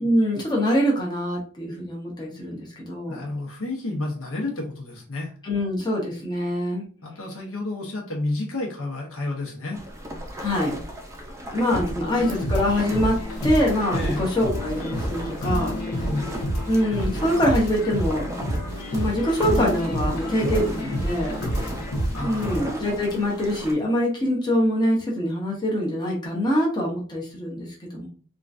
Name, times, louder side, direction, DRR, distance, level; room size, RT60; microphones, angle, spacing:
voice 1, 0.0-3.2 5.4-6.8 10.4-10.7 11.5-15.8 16.7-18.3 18.9-21.4 22.2-28.1, equal, 20° left, -3 dB, 0.8 m, -24 dB
voice 2, 3.1-5.3 7.0-9.8 11.9-12.0 13.9-14.2 16.0-16.3 22.1-22.7, left 2 dB, 65° left, -1 dB, 1.0 m, -30 dB
sound 1, 9.7-23.7, equal, 15° right, 0.5 m, -36 dB
sound 2, 12.1-22.6, equal, 85° left, 1.0 m, -28 dB
3.6 x 2.4 x 2.5 m, 0.39 s
head